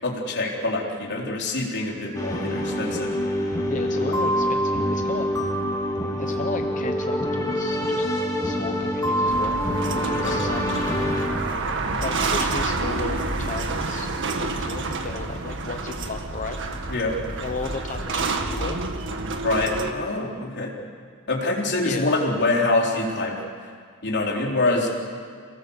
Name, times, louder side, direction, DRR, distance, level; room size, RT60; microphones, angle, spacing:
voice 1, 0.0-3.1 4.1-4.2 10.1-10.4 16.9-17.2 19.4-20.7 21.3-23.4 24.0-24.9, left 2 dB, 55° left, -2 dB, 4.0 m, -25 dB
sound 1, 2.1-11.3, equal, 15° left, 3.5 m, -25 dB
voice 2, 3.7-5.3 6.2-8.1 8.4-9.6 10.0-10.8 12.0-14.1 14.4-16.6 17.4-18.8 21.8-22.1 24.7-24.9, left 3 dB, 35° left, 5 dB, 1.0 m, -34 dB
sound 2, 9.3-19.9, right 3 dB, 60° right, 1.7 m, -28 dB
28.5 x 18.0 x 7.2 m, 2.1 s
head